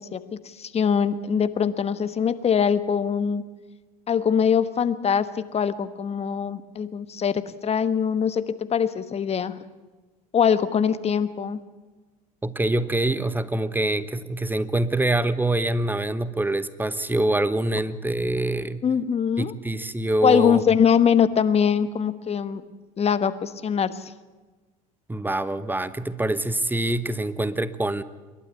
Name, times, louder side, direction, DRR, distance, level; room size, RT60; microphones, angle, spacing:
voice 1, 0.0-3.4 4.1-9.5 10.3-11.6 18.8-19.5 20.2-22.6 23.0-24.1, left 7 dB, 35° left, 13 dB, 1.4 m, -23 dB
voice 2, 12.4-18.8 19.4-20.6 25.1-28.0, right 1 dB, 10° right, 14 dB, 1.0 m, -25 dB
27.5 x 12.0 x 8.3 m, 1.3 s
hypercardioid pair, 80°, 19 cm